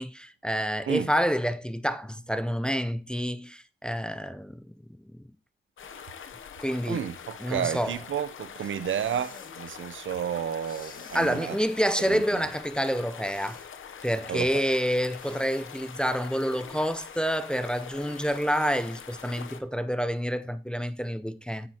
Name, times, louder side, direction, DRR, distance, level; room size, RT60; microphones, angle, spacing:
voice 1, 0.0-4.7 5.1-5.2 6.6-7.0 7.4-7.9 11.1-13.6 14.0-21.7, equal, 5° left, 0.5 m, -28 dB
sound 1, 5.8-19.6, left 7 dB, 75° left, 0.8 m, -44 dB
voice 2, 6.9-11.6 12.0-12.4 14.3-14.7, right 9 dB, 75° right, 0.6 m, -32 dB
sound 2, 8.8-9.6 10.6-11.5 13.2-13.7 15.1-15.7, left 4 dB, 45° left, 1.4 m, -49 dB
9.2 x 7.6 x 2.8 m
wide cardioid pair, 140°, 20 cm